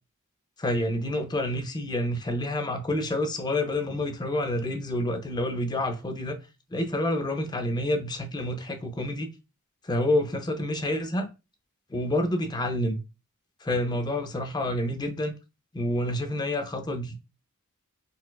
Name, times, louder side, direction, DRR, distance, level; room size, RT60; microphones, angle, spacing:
voice 1, 0.6-6.4 6.7-9.3 9.8-11.3 11.9-13.0 13.6-15.3 15.7-17.2, left 1 dB, 20° left, 0.4 m, -28 dB
4.0 x 2.2 x 2.2 m
head